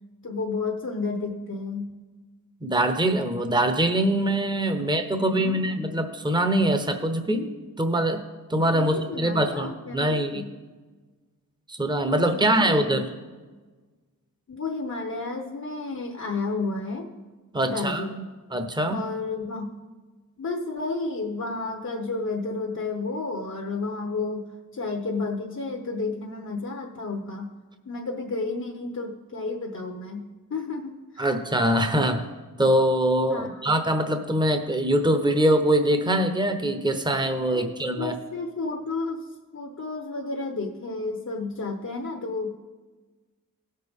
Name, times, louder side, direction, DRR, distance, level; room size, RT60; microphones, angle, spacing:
voice 1, 0.2-1.9 5.2-6.0 8.7-10.5 12.3-13.0 14.5-17.1 17.6-18.3 18.9-19.7 20.4-27.5 27.8-31.3 33.3-33.7 37.5-42.6, left 3 dB, 55° left, 2 dB, 1.0 m, -32 dB
voice 2, 2.6-7.5 7.8-8.2 8.5-10.4 11.7-13.1 17.5-18.1 18.5-19.0 31.2-32.2 32.6-38.1, right 1 dB, 15° right, 7 dB, 0.9 m, -23 dB
16.5 x 6.6 x 3.6 m, 1.3 s
wide cardioid pair, 55°, 35 cm